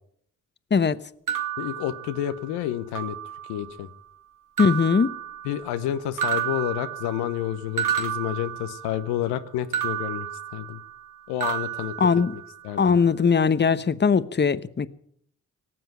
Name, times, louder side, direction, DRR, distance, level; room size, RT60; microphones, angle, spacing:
sound 1, 1.3-2.5 2.9-3.7 4.6-5.8 6.2-9.1 9.7-11.1 11.4-12.7, right 10 dB, 55° right, 1.7 m, -31 dB
voice 1, 1.6-3.2 3.5-3.9 5.4-10.3 10.5-10.8 11.3-12.0 12.6-13.0, left 12 dB, 85° left, 0.9 m, -29 dB
voice 2, 4.6-5.1 12.0-12.3 12.8-14.9, left 5 dB, 25° left, 1.0 m, -20 dB
18.5 x 7.7 x 9.0 m
hypercardioid pair, 40°, 39 cm